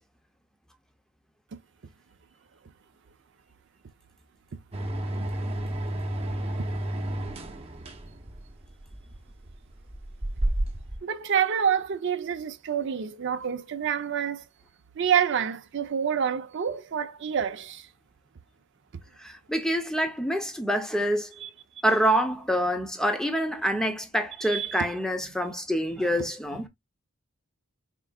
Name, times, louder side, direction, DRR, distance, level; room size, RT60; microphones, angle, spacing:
sound 1, 4.7-11.0, right 1 dB, 25° right, 0.8 m, -31 dB
voice 1, 11.0-14.4 15.0-17.9 21.4-21.5 24.4-24.9 26.2-26.3, right 8 dB, 55° right, 0.4 m, -27 dB
voice 2, 19.2-21.3 21.8-26.7, equal, 5° left, 0.5 m, -26 dB
4.4 x 3.7 x 2.2 m
head